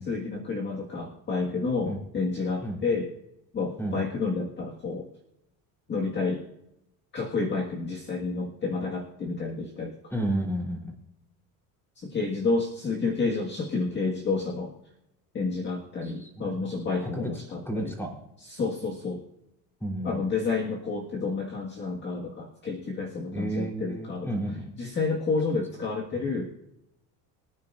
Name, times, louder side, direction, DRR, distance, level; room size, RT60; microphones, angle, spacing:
voice 1, 0.1-3.1 3.5-5.1 5.9-6.4 7.1-9.9 12.0-14.7 15.3-17.9 18.4-19.2 20.0-24.3 24.8-26.6, left 4 dB, 30° left, 0 dB, 1.8 m, -30 dB
voice 2, 10.1-10.9 16.0-17.3 17.7-18.1 19.8-20.2 23.3-24.7 26.2-26.3, right 1 dB, 5° left, 0 dB, 3.7 m, -32 dB
24.0 x 9.8 x 2.6 m, 0.82 s
cardioid pair, 135°, 37 cm